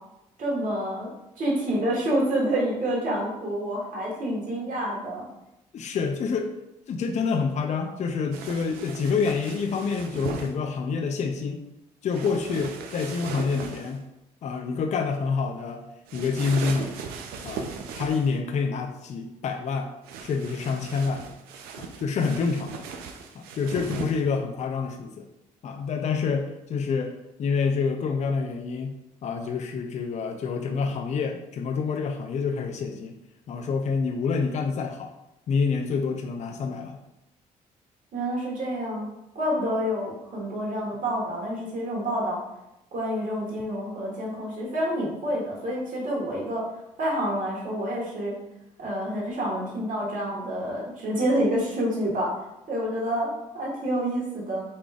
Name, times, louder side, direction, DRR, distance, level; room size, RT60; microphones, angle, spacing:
voice 1, 0.4-1.1 1.4-5.2 38.1-39.1 39.3-42.4 42.9-46.6 47.0-48.3 48.8-52.3 52.7-54.6, equal, 60° right, -3 dB, 1.4 m, -28 dB
voice 2, 5.7-6.5 6.9-11.6 12.0-14.0 14.4-15.8 16.1-17.0 17.4-19.9 20.2-21.3 21.8-22.8 23.3-25.3 25.6-28.9 29.2-33.2 33.5-35.1 35.5-37.0, left 5 dB, 50° left, 5 dB, 0.4 m, -27 dB
sound 1, 8.3-10.5 12.1-14.0 16.1-18.4 20.0-24.2, right 5 dB, 85° right, 0.4 m, -38 dB
4.0 x 3.2 x 2.3 m, 0.88 s
supercardioid pair, 65°, 15 cm